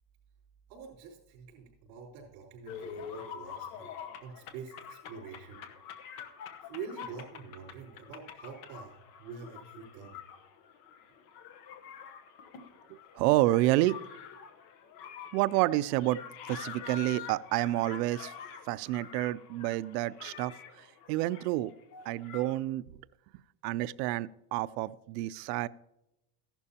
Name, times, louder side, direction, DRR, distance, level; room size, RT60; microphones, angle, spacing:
voice 1, 0.7-3.9 4.2-5.6 6.6-10.2, right 5 dB, 65° right, -7 dB, 4.4 m, -46 dB
sound 1, 2.7-22.6, left 7 dB, 45° left, 1.1 m, -46 dB
voice 2, 12.9-14.0 15.3-16.2 16.5-18.3 18.7-21.7 22.1-22.8 23.6-25.7, right 16 dB, 80° right, 18 dB, 0.6 m, -29 dB
15.0 x 11.5 x 2.8 m, 0.90 s
cardioid pair, 180°, 48 cm